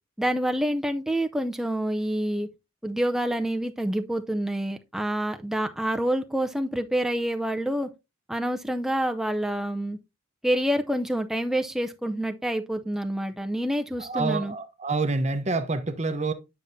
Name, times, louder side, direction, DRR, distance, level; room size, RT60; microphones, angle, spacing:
voice 1, 0.2-2.5 2.8-7.9 8.3-10.0 10.4-14.5, right 1 dB, ahead, 0.5 m, -27 dB
voice 2, 14.0-16.3, right 3 dB, 35° right, 0.8 m, -27 dB
9.2 x 5.7 x 2.7 m
head